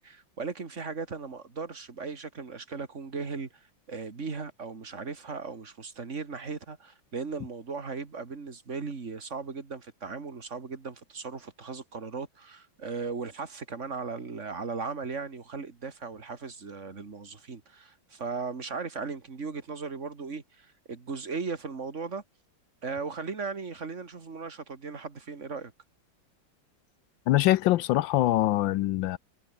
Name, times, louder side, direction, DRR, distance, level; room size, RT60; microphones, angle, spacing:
voice 1, 0.0-22.2 22.8-25.7, right 4 dB, 35° right, 2.5 m, -37 dB
voice 2, 27.3-29.2, left 15 dB, 75° left, 1.3 m, -23 dB
omnidirectional pair, 2.2 m